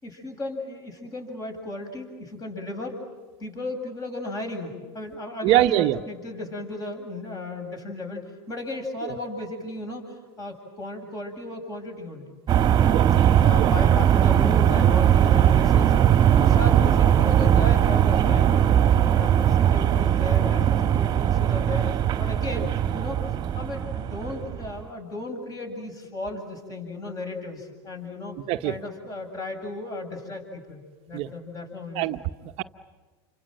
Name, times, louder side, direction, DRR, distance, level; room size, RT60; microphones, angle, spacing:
voice 1, 0.0-3.0 3.4-12.4 12.7-13.0 13.4-15.9 16.3-18.8 19.2-21.9 22.2-23.2 23.5-28.3 28.6-30.8 31.1-32.2, left 2 dB, 25° left, 4 dB, 7.9 m, -35 dB
voice 2, 5.4-6.0 9.0-9.1 12.9-13.1 13.6-13.7 22.6-22.7 28.5-28.7 31.1-31.3 31.9-32.6, right 14 dB, 50° right, 7 dB, 1.0 m, -23 dB
sound 1, 12.5-24.8, right 10 dB, 30° right, 1.7 m, -20 dB
29.0 x 26.0 x 7.8 m, 1.4 s
supercardioid pair, 120°, 14 cm